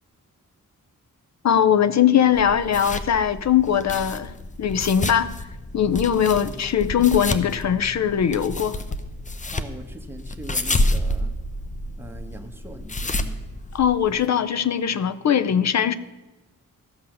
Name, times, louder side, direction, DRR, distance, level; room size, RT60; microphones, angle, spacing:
voice 1, 1.4-5.3 5.7-8.8 13.7-15.9, left 9 dB, 55° left, 0.6 m, -20 dB
sound 1, 2.3-14.3, left 1 dB, 25° left, 0.7 m, -29 dB
voice 2, 9.5-11.4 12.0-13.4, right 1 dB, 5° right, 1.2 m, -41 dB
14.0 x 5.5 x 6.6 m
cardioid pair, 75°, 33 cm